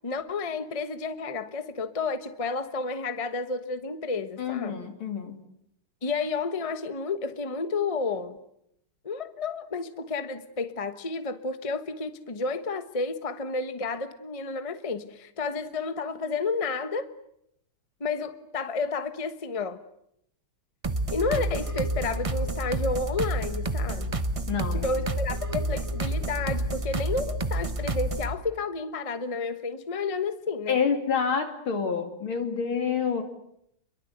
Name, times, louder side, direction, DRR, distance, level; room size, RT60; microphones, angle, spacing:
voice 1, 0.0-4.8 6.0-8.4 9.0-17.1 18.0-19.8 21.1-24.2 24.8-30.8, left 4 dB, 20° left, 10 dB, 1.0 m, -31 dB
voice 2, 4.4-5.4 24.5-24.9 30.7-33.2, left 6 dB, 70° left, 6 dB, 3.6 m, -28 dB
sound 1, 20.8-28.3, right 1 dB, 35° right, 0.5 m, -29 dB
29.0 x 23.0 x 8.2 m, 0.76 s
omnidirectional pair, 2.3 m